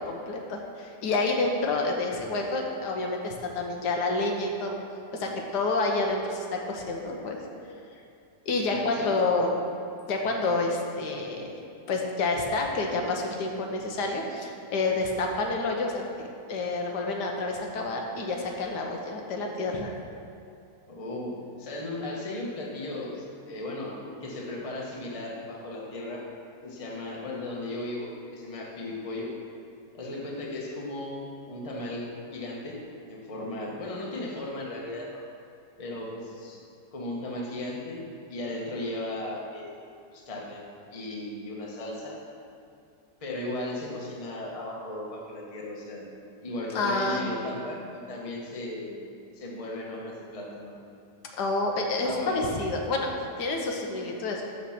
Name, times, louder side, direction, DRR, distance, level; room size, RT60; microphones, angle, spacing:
voice 1, 0.0-4.8 5.1-7.4 8.5-9.5 10.1-11.5 11.9-16.1 16.5-19.9 46.7-47.5 51.4-53.1 53.4-54.4, left 3 dB, 85° left, 1 dB, 1.5 m, -28 dB
voice 2, 8.7-9.2 20.9-26.2 26.6-29.3 29.9-32.8 33.1-35.2 35.8-36.6 36.9-39.7 40.1-40.7 40.9-42.2 43.2-46.1 46.4-49.0 49.3-50.8 52.0-52.5, left 1 dB, 25° left, -2 dB, 1.0 m, -36 dB
6.6 x 5.9 x 5.8 m, 2.5 s
omnidirectional pair, 1.7 m